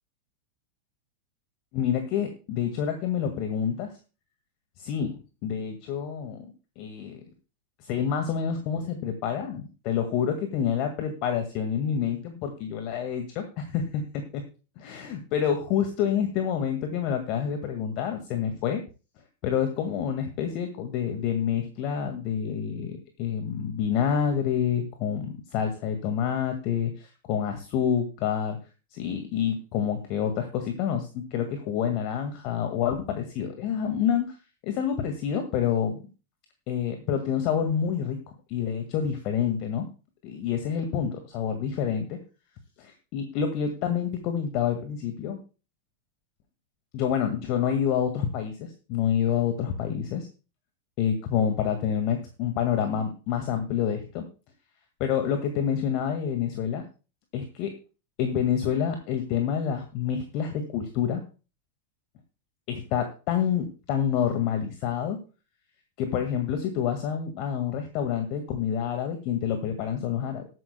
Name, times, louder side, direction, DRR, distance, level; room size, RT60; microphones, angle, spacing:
voice 1, 1.7-4.0 4.8-6.5 6.8-7.2 7.8-14.4 14.8-18.8 19.4-28.6 28.9-34.4 34.6-36.0 36.7-38.2 38.5-39.9 40.2-42.2 42.8-45.4 46.9-50.3 51.0-54.2 55.0-56.8 57.3-57.8 58.2-61.2 62.7-65.2 66.0-70.5, left 8 dB, 40° left, 6 dB, 1.8 m, -28 dB
19.5 x 9.5 x 2.2 m, 0.33 s
figure-of-eight pair, 90°, 0 cm